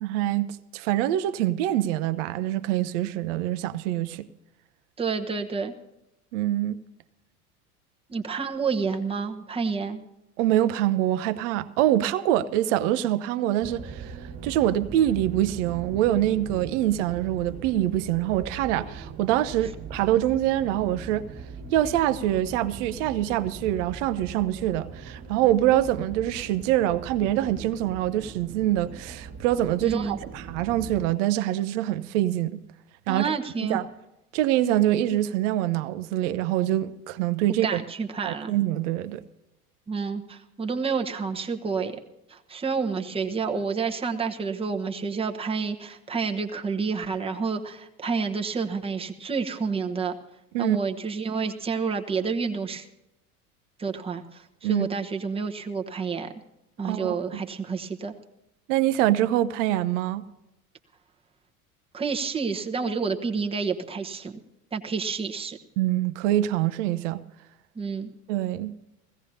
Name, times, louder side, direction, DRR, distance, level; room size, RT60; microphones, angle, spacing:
voice 1, 0.0-4.3 6.3-6.8 10.4-21.3 21.7-32.6 33.1-33.3 33.6-33.9 34.3-37.8 38.2-39.2 50.5-50.8 54.6-54.9 56.8-57.4 58.7-60.2 65.8-67.2 68.3-68.7, right 13 dB, 55° right, 0.7 m, -25 dB
voice 2, 5.0-5.7 8.1-10.0 29.8-30.2 33.1-33.8 37.6-38.5 39.9-41.9 42.3-50.2 50.6-52.8 53.8-56.3 56.8-58.1 61.9-64.4 64.7-65.6 67.7-68.1, right 5 dB, 10° right, 1.0 m, -29 dB
sound 1, 13.6-31.1, right 5 dB, 30° right, 1.7 m, -40 dB
21.5 x 16.5 x 2.8 m
figure-of-eight pair, 75°, 45 cm